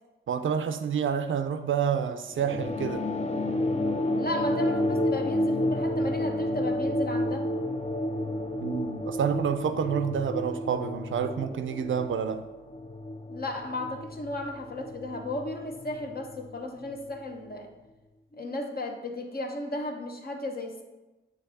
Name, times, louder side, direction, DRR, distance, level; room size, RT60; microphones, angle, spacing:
voice 1, 0.3-3.1 8.6-12.4, right 7 dB, 75° right, 0.5 m, -28 dB
sound 1, 2.3-17.2, left 1 dB, 30° left, 0.6 m, -31 dB
voice 2, 4.1-7.5 13.3-17.7 18.3-20.8, left 1 dB, 50° left, 1.0 m, -34 dB
8.1 x 3.1 x 4.1 m
cardioid pair, 50°, 21 cm